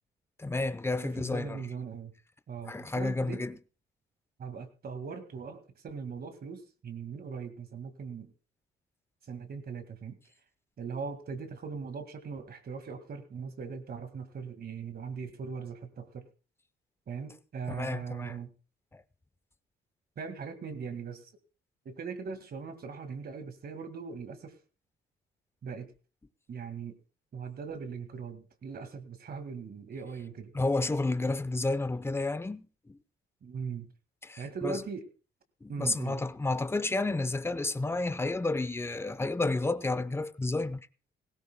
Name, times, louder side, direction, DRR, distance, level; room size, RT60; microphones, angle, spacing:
voice 1, 0.4-1.6 2.7-3.5 17.7-18.4 18.9-19.0 30.5-33.0 34.2-34.8 35.6-40.9, left 2 dB, 10° left, 0.8 m, -31 dB
voice 2, 1.0-2.1 2.5-3.4 4.4-8.3 9.2-10.2 10.8-16.2 17.1-18.5 20.2-21.3 21.9-24.6 25.6-25.9 26.5-27.0 27.3-30.5 33.4-33.9 34.4-35.1 35.7-36.2, right 5 dB, 50° right, 2.0 m, -40 dB
18.5 x 16.5 x 2.2 m
cardioid pair, 90°, 20 cm